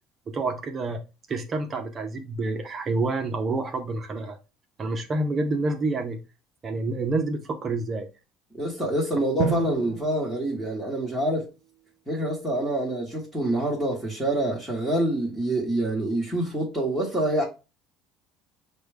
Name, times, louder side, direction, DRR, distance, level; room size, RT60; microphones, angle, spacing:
voice 1, 0.3-1.0 1.3-4.4 4.8-6.2 6.6-8.1, right 2 dB, 25° right, 0.6 m, -28 dB
voice 2, 8.5-11.5 12.1-17.4, right 1 dB, ahead, 1.0 m, -26 dB
Drum, 9.4-11.3, right 9 dB, 80° right, 0.5 m, -32 dB
5.9 x 2.2 x 3.3 m
cardioid pair, 150°, 0 cm